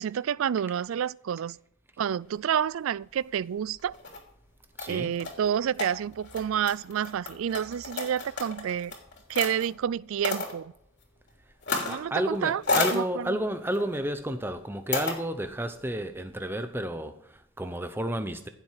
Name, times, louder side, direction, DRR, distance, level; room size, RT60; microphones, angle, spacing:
voice 1, 0.0-1.6 2.0-4.0 4.9-8.9 9.3-10.7 11.9-12.6 12.9-13.4, right 8 dB, 75° right, 0.3 m, -29 dB
sound 1, 3.8-4.2 4.8-9.7 10.2-10.5 11.6-12.1 12.3-13.0 13.7-14.0 14.9-15.2, left 3 dB, 55° left, 3.1 m, -32 dB
voice 2, 4.8-5.1 11.9-18.5, right 1 dB, 10° right, 0.9 m, -31 dB
16.0 x 7.5 x 4.8 m
head